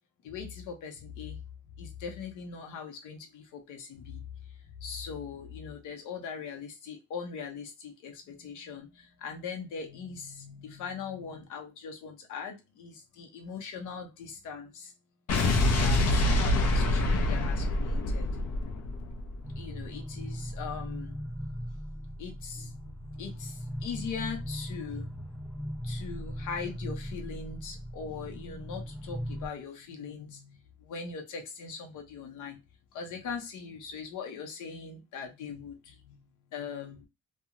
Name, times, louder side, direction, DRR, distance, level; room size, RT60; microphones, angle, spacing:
voice 1, 0.2-1.4 1.8-14.9 15.8-18.3 19.6-21.4 21.9-25.1 25.8-32.6 32.9-36.3 36.5-37.1, left 6 dB, 85° left, 0.9 m, -41 dB
Explosion, 15.3-19.6, left 1 dB, 55° left, 0.8 m, -26 dB
sound 1, 19.4-29.5, equal, ahead, 0.7 m, -39 dB
2.8 x 2.3 x 2.6 m
cardioid pair, 90°, 30 cm